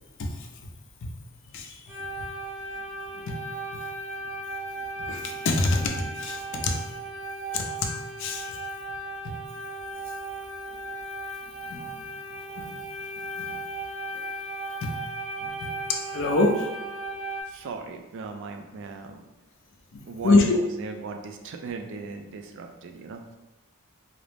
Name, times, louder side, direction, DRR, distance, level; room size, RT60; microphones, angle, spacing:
sound 1, 1.9-17.4, right 1 dB, 5° right, 0.6 m, -36 dB
voice 1, 5.1-6.7 7.5-7.6 8.2-8.4 9.2-9.3 11.7-11.9 12.6-12.7 13.4-13.6 14.8-14.9 15.4-15.5 15.9-16.6 19.9-20.6, left 2 dB, 60° left, 2 dB, 0.4 m, -25 dB
voice 2, 17.5-19.2 20.1-23.4, right 4 dB, 60° right, 5 dB, 0.3 m, -38 dB
2.4 x 2.0 x 3.2 m, 1.1 s
head